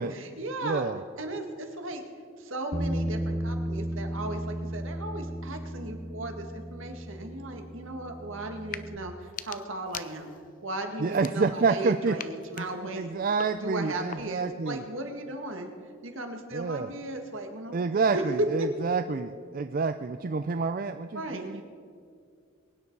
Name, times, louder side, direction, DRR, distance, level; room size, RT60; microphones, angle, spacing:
voice 1, 0.1-0.9 1.2-2.1 2.4-10.3 10.6-13.1 13.6-15.7 16.0-18.7 21.1-21.6, right 2 dB, 70° right, 5 dB, 1.8 m, -36 dB
voice 2, 0.6-1.0 11.0-12.2 12.6-12.7 12.9-14.8 16.5-16.9 17.7-21.6, right 4 dB, 40° right, 9 dB, 0.4 m, -28 dB
Bass guitar, 2.7-9.0, right 1 dB, 20° right, 1.1 m, -34 dB
sound 1, 8.6-8.9 9.2-10.5 11.1-11.8 12.2-14.5, left 8 dB, 40° left, 0.5 m, -43 dB
22.5 x 9.7 x 4.7 m, 2.2 s
head